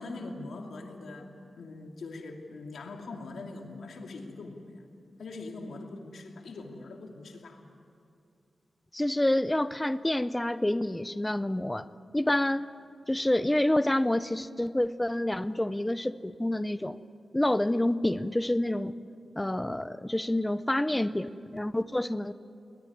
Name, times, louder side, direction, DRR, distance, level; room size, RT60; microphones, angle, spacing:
voice 1, 0.0-4.8 5.2-7.7, left 3 dB, 75° left, 2 dB, 2.7 m, -42 dB
voice 2, 8.9-11.9 12.1-12.7 13.1-17.0 17.3-19.0 19.4-22.3, left 1 dB, 10° left, 14 dB, 0.5 m, -28 dB
21.5 x 20.0 x 9.8 m, 2.4 s
wide cardioid pair, 165°, 0 cm